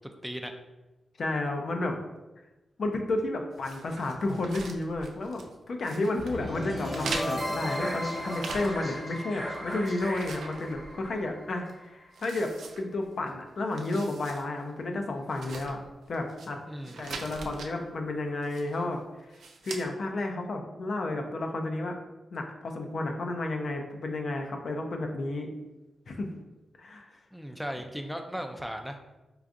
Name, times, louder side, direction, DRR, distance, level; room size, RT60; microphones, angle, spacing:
voice 1, 1.2-2.0 2.8-15.8 16.1-16.6 17.0-19.0 19.6-22.0 22.3-25.5 26.1-26.3 26.8-27.1, left 2 dB, 65° left, 3 dB, 0.5 m, -32 dB
sound 1, 3.6-5.5 5.8-6.4 6.9-9.0 9.4-11.3 11.6-11.7 12.1-13.3 13.6-14.4 14.8-14.9 15.3-16.5 16.8-17.7 18.4-18.9 19.3-19.8, right 4 dB, 90° right, 0.3 m, -42 dB
sound 2, 6.2-12.2, equal, 45° left, 1.1 m, -35 dB
voice 2, 16.7-17.3 27.3-29.0, equal, ahead, 5 dB, 0.4 m, -37 dB
4.6 x 2.5 x 2.5 m, 1.1 s
cardioid pair, 65°, 0 cm